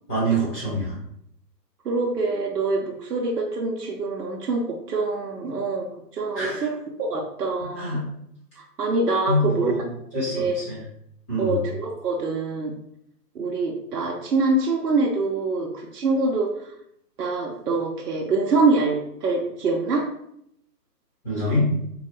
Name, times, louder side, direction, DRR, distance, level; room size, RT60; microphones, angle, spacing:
voice 1, 0.1-1.0 6.3-6.7 7.7-8.0 9.3-9.8 10.1-10.8 11.3-11.6 21.2-21.7, equal, 10° left, -9 dB, 1.0 m, -25 dB
voice 2, 1.8-5.9 6.1-6.7 7.0-8.0 8.6-9.7 10.1-10.5 11.4-12.7 13.3-16.5 17.2-20.1, right 3 dB, 70° right, -2 dB, 0.9 m, -25 dB
3.9 x 2.3 x 4.3 m, 0.74 s
hypercardioid pair, 165°, 49 cm